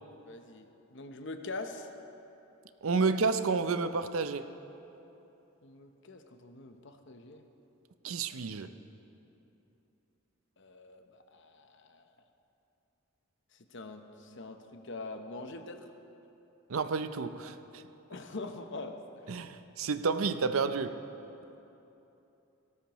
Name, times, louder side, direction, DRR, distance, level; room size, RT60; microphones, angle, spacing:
voice 1, 0.2-1.9 5.6-7.5 10.6-12.1 13.7-15.9 18.1-19.0, left 3 dB, 60° left, 6 dB, 0.9 m, -43 dB
voice 2, 2.8-4.5 8.0-8.7 16.7-17.8 19.3-21.0, right 4 dB, 80° right, 11 dB, 0.6 m, -30 dB
18.5 x 17.5 x 3.1 m, 2.9 s
head